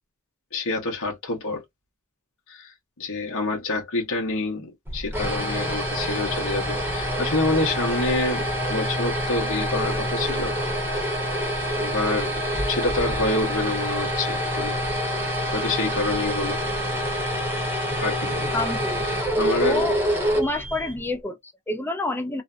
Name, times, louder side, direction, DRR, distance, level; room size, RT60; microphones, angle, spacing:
voice 1, 0.5-1.6 2.5-10.6 11.8-12.3 12.7-14.8 15.5-16.6 18.0-18.5 19.0-19.9, left 2 dB, 65° left, 0.9 m, -27 dB
sound 1, 4.9-21.1, equal, 10° right, 0.9 m, -26 dB
voice 2, 18.5-19.0 19.6-20.0 20.3-22.4, left 2 dB, 10° left, 0.4 m, -28 dB
2.5 x 2.1 x 2.4 m
head